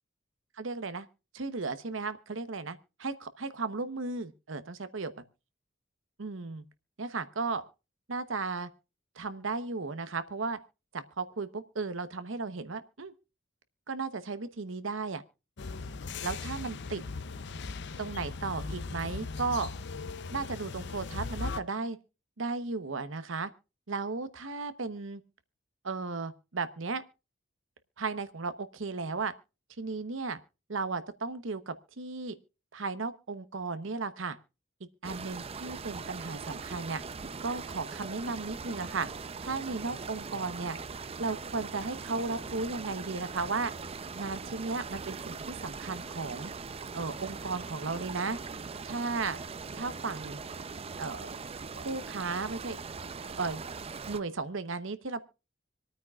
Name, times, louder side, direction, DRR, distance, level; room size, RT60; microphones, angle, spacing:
voice 1, 0.6-1.1 1.3-5.1 6.2-6.6 7.0-7.6 8.1-8.7 9.2-10.6 10.9-13.1 13.9-15.2 16.2-17.0 18.0-19.7 20.3-22.0 22.4-23.5 23.9-25.2 25.8-27.0 28.0-29.3 29.8-30.4 30.7-32.3 32.7-34.4 34.8-37.0 37.4-39.1 39.4-40.8 41.2-43.7 44.1-46.5 46.9-48.4 48.8-49.4 49.7-50.4 51.0-51.3 51.7-52.8 53.2-53.6 54.1-55.2, right 4 dB, 80° right, 12 dB, 1.0 m, -35 dB
sound 1, 15.6-21.6, left 4 dB, 60° left, 0.6 m, -38 dB
sound 2, 35.0-54.2, right 5 dB, 30° right, 0.5 m, -41 dB
26.0 x 9.2 x 2.4 m, 0.30 s
head